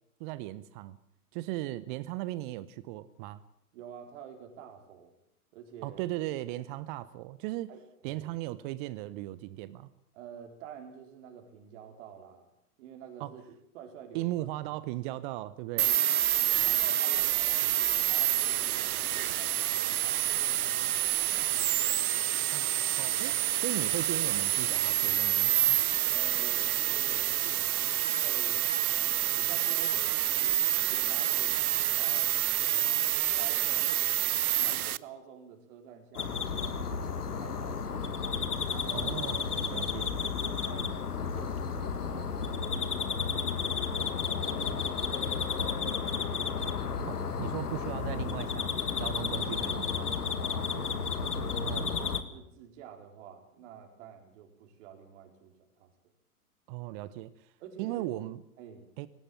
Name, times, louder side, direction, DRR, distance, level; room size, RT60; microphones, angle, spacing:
voice 1, 0.2-1.0 1.3-3.4 5.8-7.7 8.0-9.9 13.2-13.3 14.1-15.9 22.5-22.7 23.0-25.8 38.9-40.1 47.0-50.2 51.6-52.0 56.7-57.5 57.8-58.4 59.0-59.1, right 16 dB, 35° right, 17 dB, 0.8 m, -37 dB
voice 2, 3.7-5.1 5.5-6.0 7.7-8.3 10.1-12.5 12.8-13.4 13.7-14.9 15.7-16.1 16.6-21.8 23.3-23.4 26.1-28.7 29.4-32.3 32.9-34.0 34.5-37.8 38.7-39.2 39.7-39.9 40.4-45.4 45.8-46.5 50.5-51.7 52.0-55.9 57.6-58.1 58.6-58.9, right 8 dB, 50° right, 4 dB, 4.1 m, -49 dB
sound 1, 15.8-35.0, right 12 dB, 70° right, 0.8 m, -28 dB
sound 2, 36.2-52.2, left 6 dB, 80° left, 1.9 m, -32 dB
18.0 x 18.0 x 8.9 m, 0.76 s
hypercardioid pair, 110°, 45 cm